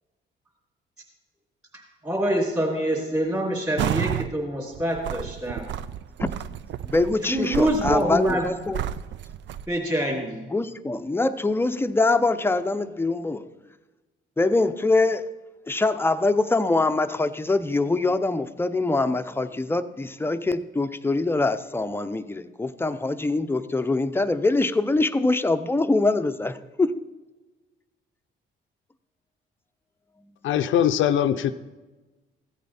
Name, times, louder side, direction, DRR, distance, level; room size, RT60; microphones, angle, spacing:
voice 1, 2.0-5.6 7.3-8.4 9.7-10.4, right 1 dB, 15° right, -7 dB, 3.0 m, -25 dB
sound 1, 3.8-4.3 4.7-9.7, right 11 dB, 70° right, 0.4 m, -31 dB
voice 2, 6.9-8.8 10.5-13.5 14.4-15.4 15.7-26.9, left 2 dB, 10° left, 10 dB, 0.6 m, -24 dB
voice 3, 30.4-31.5, left 10 dB, 75° left, 10 dB, 0.6 m, -21 dB
15.0 x 8.4 x 4.2 m, 1.2 s
cardioid pair, 90°, 20 cm